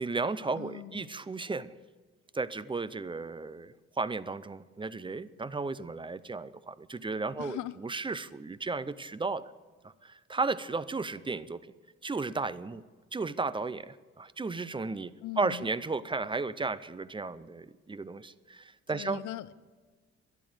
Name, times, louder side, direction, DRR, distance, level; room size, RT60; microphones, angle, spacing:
voice 1, 0.0-1.7 2.3-9.5 9.8-11.7 12.0-12.8 13.1-19.2, right 3 dB, 15° right, 0.5 m, -34 dB
voice 2, 0.5-1.1 7.4-7.8 15.2-15.7 18.9-19.6, left 15 dB, 85° left, 0.6 m, -40 dB
12.5 x 10.5 x 7.8 m
cardioid pair, 90°, 30 cm